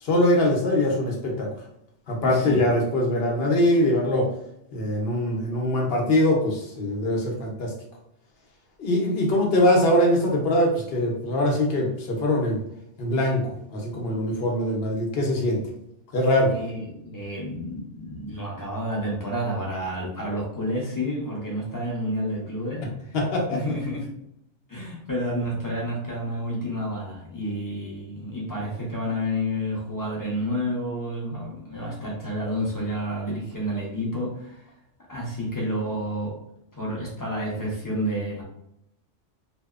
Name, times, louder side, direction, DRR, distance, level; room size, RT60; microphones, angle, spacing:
voice 1, 0.0-1.5 2.1-4.3 4.7-7.7 8.8-12.6 13.0-13.4 13.7-15.6 16.1-16.5 23.1-23.6, left 1 dB, 60° left, 0 dB, 0.8 m, -22 dB
voice 2, 2.2-2.7 16.5-23.2 23.5-24.1 24.7-34.6 35.1-36.4 36.7-38.4, equal, 20° left, -4 dB, 0.6 m, -30 dB
2.7 x 2.0 x 2.3 m, 0.77 s
omnidirectional pair, 1.2 m